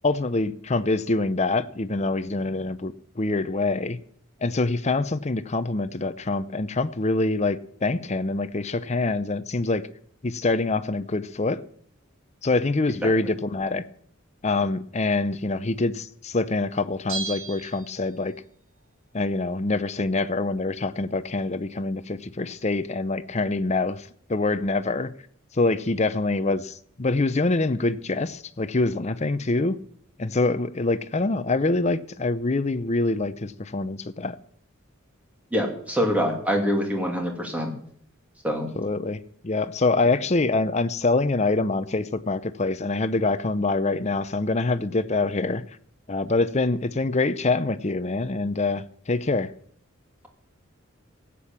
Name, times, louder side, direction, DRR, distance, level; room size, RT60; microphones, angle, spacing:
voice 1, 0.0-4.0 4.4-9.9 10.2-11.6 12.4-13.8 14.4-18.3 19.1-25.1 25.5-29.7 30.2-34.4 38.8-39.2 39.4-45.6 46.1-49.5, left 3 dB, 30° left, 0.6 m, -25 dB
Bell, 17.1-18.5 18.8-18.9, right 4 dB, 65° right, 3.4 m, -35 dB
voice 2, 35.5-37.7 38.4-38.7, equal, 5° right, 2.7 m, -25 dB
16.0 x 8.5 x 7.3 m
head